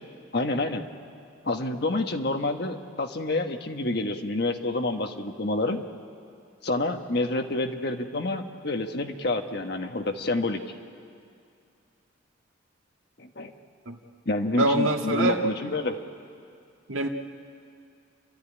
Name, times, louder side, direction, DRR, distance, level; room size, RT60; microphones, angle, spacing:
voice 1, 0.3-0.9 1.4-5.8 6.6-10.6 13.2-13.5 14.2-15.9, left 2 dB, 50° left, 5 dB, 1.3 m, -28 dB
voice 2, 14.6-15.4 16.9-17.1, right 2 dB, 80° right, 3 dB, 1.7 m, -24 dB
29.5 x 12.5 x 9.9 m, 2.4 s
head